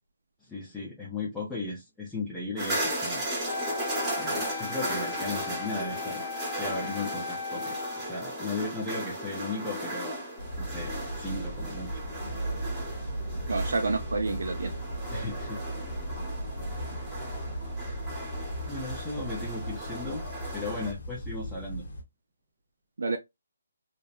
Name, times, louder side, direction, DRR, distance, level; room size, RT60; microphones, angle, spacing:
voice 1, 0.4-3.2 4.1-6.2 6.6-10.2 10.6-12.0 15.1-15.6 18.7-20.2 20.5-21.8, left 3 dB, 5° left, 0.5 m, -36 dB
sound 1, 2.6-20.9, right 1 dB, 15° right, 1.0 m, -36 dB
Wind instrument woodwind instrument, 3.4-8.6, left 6 dB, 90° left, 0.6 m, -38 dB
sound 2, 10.4-22.0, right 1 dB, 70° left, 1.0 m, -36 dB
voice 2, 13.5-14.7 23.0-23.2, right 3 dB, 70° right, 0.4 m, -28 dB
2.7 x 2.1 x 2.3 m
hypercardioid pair, 160°, 0 cm